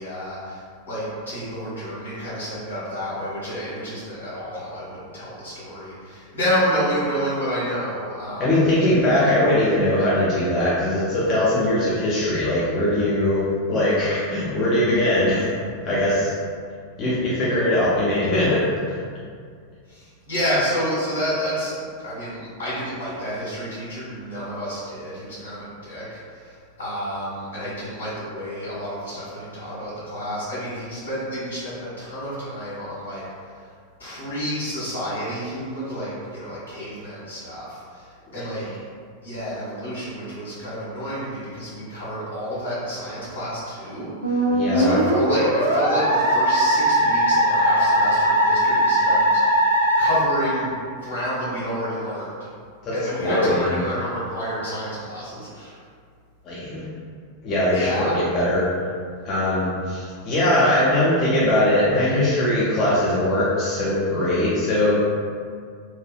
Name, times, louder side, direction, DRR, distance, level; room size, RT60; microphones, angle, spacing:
voice 1, 0.0-8.9 19.9-33.7 34.0-38.7 39.2-49.7 50.0-52.5 52.9-55.8 57.7-58.2, equal, 75° left, -11 dB, 1.4 m, -29 dB
voice 2, 8.4-15.5 15.8-16.3 17.0-18.6 44.5-45.0 52.8-53.8 56.5-56.8 57.4-58.7 59.2-64.9, left 1 dB, 35° left, -8 dB, 0.5 m, -21 dB
Musical instrument, 44.2-51.1, equal, 80° right, 0.4 m, -20 dB
3.0 x 2.3 x 2.3 m, 2.1 s
figure-of-eight pair, 90°, 0 cm